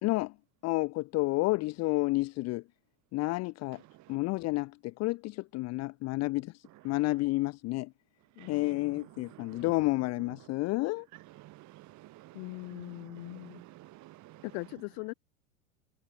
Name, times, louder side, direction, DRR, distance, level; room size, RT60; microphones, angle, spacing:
voice 1, 0.0-0.3 0.6-2.6 3.1-3.8 4.1-7.9 8.5-11.1, left 21 dB, 35° left, 0.6 m, -30 dB
voice 2, 8.4-8.8 12.3-13.6 14.4-15.1, left 38 dB, 50° left, 1.2 m, -41 dB
voice 3, 11.4-12.4 12.7-14.4, right 18 dB, 40° right, 1.2 m, -51 dB
hypercardioid pair, 100°, 45 cm